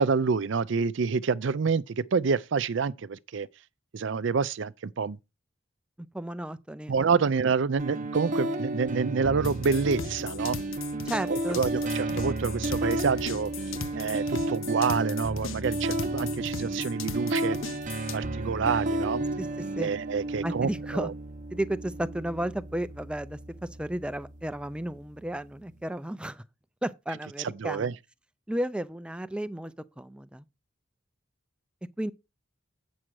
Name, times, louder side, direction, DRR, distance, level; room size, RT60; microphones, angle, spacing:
voice 1, 0.0-3.5 3.9-5.2 6.9-10.6 11.3-13.5 13.9-17.6 18.1-19.2 19.8-21.1 27.4-27.9, right 5 dB, 65° right, 0.5 m, -27 dB
voice 2, 6.1-7.1 11.0-11.6 19.4-19.5 19.8-19.9 20.4-21.1 21.5-26.4 26.8-27.9 28.5-30.4 32.0-32.1, right 1 dB, 5° right, 0.4 m, -33 dB
sound 1, 7.8-25.8, right 1 dB, 40° right, 0.8 m, -32 dB
sound 2, 9.4-18.2, left 6 dB, 80° left, 0.9 m, -38 dB
8.6 x 6.3 x 4.6 m
head